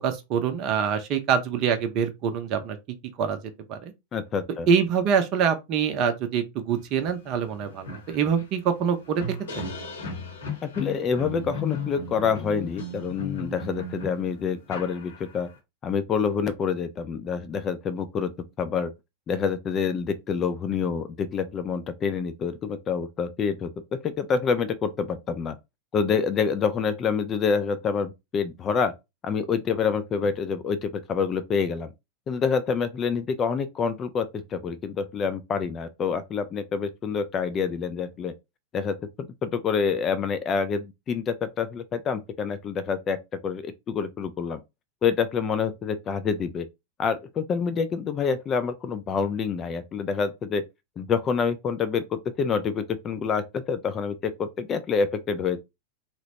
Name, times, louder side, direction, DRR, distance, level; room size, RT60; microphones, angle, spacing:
voice 1, 0.0-2.8 3.2-3.4 3.7-3.9 4.7-9.7, right 7 dB, 40° right, 0.6 m, -25 dB
voice 2, 4.1-4.7 10.6-15.5 15.8-18.3 18.6-18.9 19.3-25.6 25.9-28.9 29.2-31.9 32.3-38.3 38.7-44.6 45.0-46.7 47.0-50.6 51.0-55.6, left 6 dB, 25° left, 0.3 m, -27 dB
sound 1, 7.1-7.2 7.5-15.5, left 2 dB, 65° left, 0.9 m, -36 dB
2.8 x 2.0 x 2.8 m
figure-of-eight pair, 90°, 0 cm